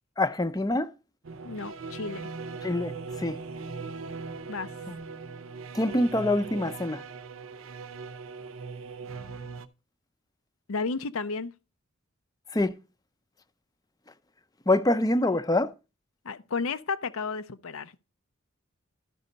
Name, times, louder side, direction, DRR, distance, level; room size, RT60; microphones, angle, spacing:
voice 1, 0.2-0.9 2.6-3.4 5.7-7.0 12.5-12.7 14.7-15.7, left 1 dB, 20° left, 0.5 m, -25 dB
sound 1, 1.2-9.7, right 4 dB, 70° right, 0.6 m, -39 dB
voice 2, 1.4-2.3 4.5-4.7 10.7-11.5 16.2-17.9, left 4 dB, 80° left, 0.6 m, -32 dB
12.5 x 5.4 x 3.9 m
head